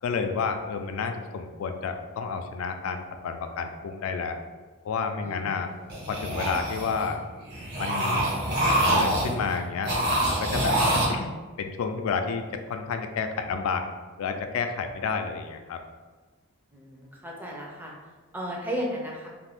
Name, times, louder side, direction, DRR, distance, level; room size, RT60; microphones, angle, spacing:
voice 1, 0.0-4.4 4.8-5.7 6.1-7.2 7.8-8.3 8.9-9.9 10.3-10.8 11.1-11.3 11.6-13.9 14.2-15.8, left 5 dB, 75° left, 6 dB, 0.3 m, -30 dB
voice 2, 5.2-5.9 16.7-17.9 18.3-19.3, equal, 10° right, -2 dB, 0.4 m, -35 dB
sound 1, 5.9-7.1 7.5-9.5 9.8-11.1, right 1 dB, 45° right, 1.2 m, -25 dB
2.6 x 2.4 x 3.4 m, 1.3 s
head